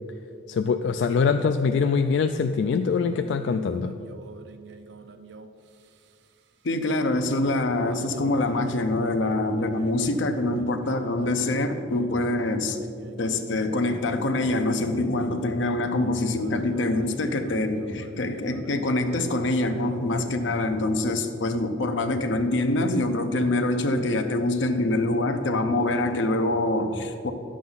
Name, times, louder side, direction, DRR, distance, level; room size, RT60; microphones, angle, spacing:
voice 1, 0.5-4.0, left 5 dB, 65° left, 7 dB, 0.3 m, -23 dB
sound 1, 2.9-6.4 7.9-21.1, right 4 dB, 65° right, 0.4 m, -45 dB
voice 2, 6.6-12.8 13.2-27.3, left 2 dB, 85° left, 7 dB, 0.7 m, -25 dB
10.5 x 7.6 x 4.0 m, 2.5 s
head